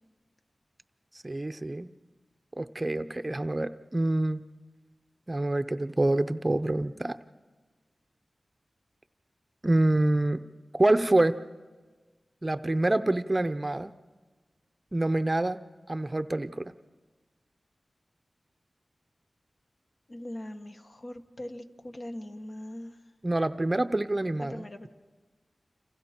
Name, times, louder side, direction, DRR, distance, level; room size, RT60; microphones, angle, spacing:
voice 1, 1.2-1.9 2.6-4.5 5.3-7.2 9.6-10.4 10.7-11.4 12.4-13.9 14.9-15.6 15.9-16.7 23.2-24.9, right 2 dB, 30° right, 11 dB, 0.6 m, -26 dB
voice 2, 20.1-23.1 24.4-24.9, left 1 dB, 50° left, 5 dB, 1.5 m, -41 dB
29.0 x 26.5 x 4.4 m, 1.3 s
wide cardioid pair, 65°, 0 cm